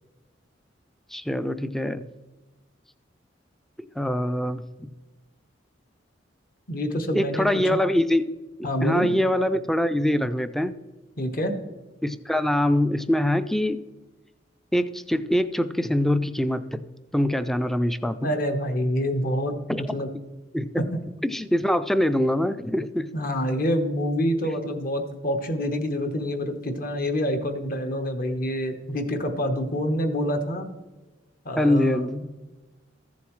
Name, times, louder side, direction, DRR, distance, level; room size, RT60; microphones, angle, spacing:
voice 1, 1.1-2.1 4.0-4.9 7.1-8.3 8.6-10.7 12.0-13.8 14.7-16.6 17.1-18.3 19.7-19.9 20.5-20.8 21.2-23.1 31.6-32.2, left 1 dB, ahead, 12 dB, 0.3 m, -24 dB
voice 2, 6.7-7.8 8.6-9.1 11.2-11.5 18.2-20.1 20.8-21.0 23.1-30.7 31.4-32.2, equal, 50° left, 6 dB, 1.1 m, -27 dB
14.5 x 7.1 x 3.1 m, 1.1 s
head